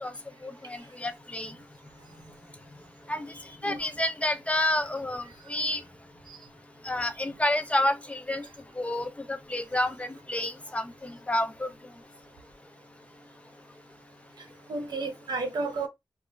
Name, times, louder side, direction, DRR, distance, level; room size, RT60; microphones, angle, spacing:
voice 1, 0.4-1.5 3.1-3.3 3.6-5.2 5.5-5.8 6.9-8.4 8.8-10.8 11.3-11.7, left 1 dB, 20° left, 0.3 m, -29 dB
voice 2, 3.4-3.8 14.7-15.9, right 3 dB, 80° right, 0.6 m, -32 dB
2.9 x 2.1 x 2.2 m
wide cardioid pair, 110°, 7 cm